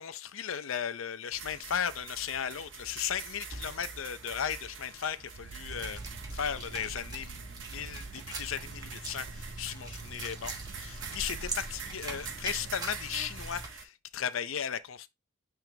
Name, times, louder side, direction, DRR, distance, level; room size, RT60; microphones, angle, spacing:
voice 1, 0.0-6.0 6.3-15.1, left 8 dB, 85° left, 0.6 m, -36 dB
sound 1, 1.3-13.8, right 5 dB, 65° right, 1.3 m, -45 dB
sound 2, 5.3-12.7, right 5 dB, 50° right, 0.3 m, -48 dB
sound 3, 5.7-13.7, right 2 dB, 20° right, 1.2 m, -43 dB
9.1 x 3.8 x 2.7 m
head